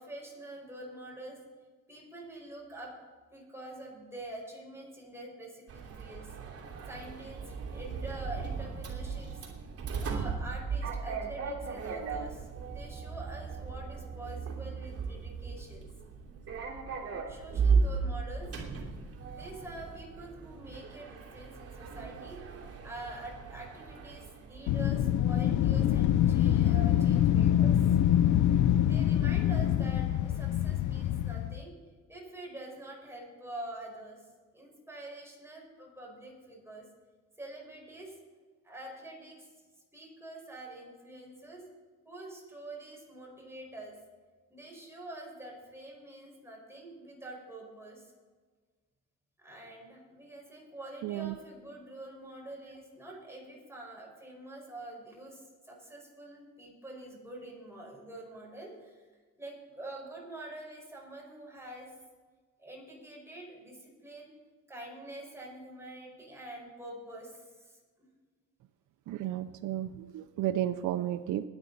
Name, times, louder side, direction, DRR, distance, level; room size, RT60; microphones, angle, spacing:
voice 1, 0.0-1.4 1.9-3.0 3.3-6.3 6.9-9.4 10.0-12.5 12.7-15.9 17.3-18.5 18.8-18.9 19.2-27.8 28.8-31.7 32.1-34.2 34.5-36.9 37.4-38.1 38.6-39.5 39.9-41.6 42.1-44.0 44.5-48.1 49.4-59.0 59.4-61.9 62.6-64.3 64.7-67.8, right 1 dB, 10° right, -2 dB, 5.2 m, -46 dB
Sliding door, 5.7-25.3, right 5 dB, 50° right, 2.8 m, -36 dB
Wind, 24.7-31.6, left 11 dB, 80° left, 0.6 m, -25 dB
voice 2, 51.0-51.3 69.1-71.4, right 12 dB, 80° right, 9 dB, 0.6 m, -33 dB
21.0 x 8.9 x 4.1 m, 1.4 s
cardioid pair, 90°, 30 cm